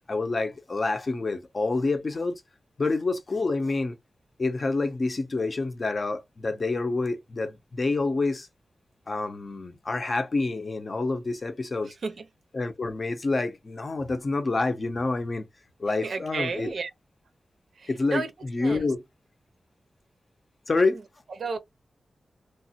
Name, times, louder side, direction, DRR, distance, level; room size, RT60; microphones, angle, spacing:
voice 1, 0.1-2.4 2.8-4.0 4.4-8.5 9.1-11.9 12.5-15.5 15.8-16.7 17.9-19.0 20.7-21.0, left 3 dB, 40° left, 0.5 m, -27 dB
voice 2, 16.0-16.9 17.8-18.3 18.6-18.9 21.4-21.6, right 4 dB, 70° right, 0.6 m, -32 dB
3.0 x 2.1 x 2.7 m
wide cardioid pair, 140°, 0 cm